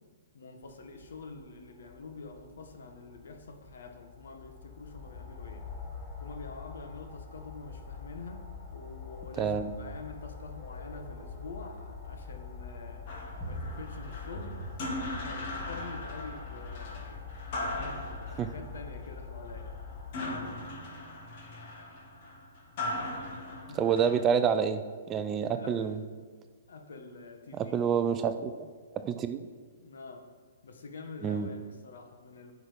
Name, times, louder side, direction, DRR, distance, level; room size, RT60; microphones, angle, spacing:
voice 1, 0.3-5.6 6.2-8.4 8.7-13.1 13.4-14.6 15.2-17.2 17.7-19.7 23.7-23.8 25.5-26.0 26.7-27.8 29.8-30.2 30.6-32.5, left 3 dB, 75° left, 5 dB, 1.5 m, -46 dB
sound 1, 0.6-20.1, left 4 dB, 10° left, 1.7 m, -44 dB
voice 2, 9.4-9.7 18.4-18.5 23.8-26.0 27.6-28.5 28.9-29.4 31.2-31.5, right 7 dB, 20° right, 10 dB, 0.4 m, -28 dB
sound 2, 13.1-24.4, left 1 dB, 40° left, 2.0 m, -39 dB
10.5 x 5.9 x 5.2 m, 1.5 s
hypercardioid pair, 160°, 0 cm